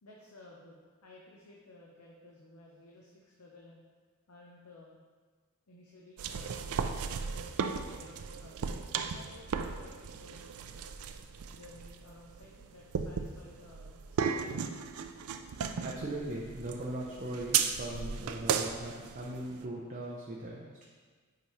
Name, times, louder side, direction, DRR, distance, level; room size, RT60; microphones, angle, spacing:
voice 1, 0.0-3.8 4.3-5.0 5.7-6.8 7.7-10.7 11.5-14.9, left 2 dB, 85° left, -2 dB, 0.8 m, -55 dB
sound 1, 6.2-19.6, right 6 dB, 80° right, 0.4 m, -36 dB
voice 2, 15.8-20.9, right 1 dB, 40° right, -3 dB, 0.7 m, -39 dB
8.2 x 5.0 x 3.2 m, 1.5 s
head